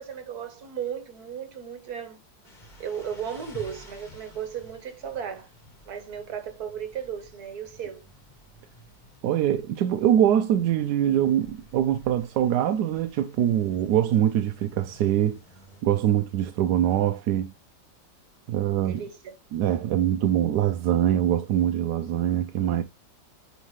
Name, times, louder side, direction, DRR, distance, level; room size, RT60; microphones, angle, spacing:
voice 1, 0.0-2.2 2.8-5.5 5.8-8.0 18.8-19.3, right 8 dB, 55° right, 1.7 m, -35 dB
sound 1, 2.4-15.8, equal, 25° left, 1.7 m, -52 dB
voice 2, 9.2-15.4 15.8-17.5 18.5-19.0 19.5-22.8, right 11 dB, 70° right, 1.0 m, -23 dB
9.1 x 3.6 x 3.2 m
omnidirectional pair, 2.0 m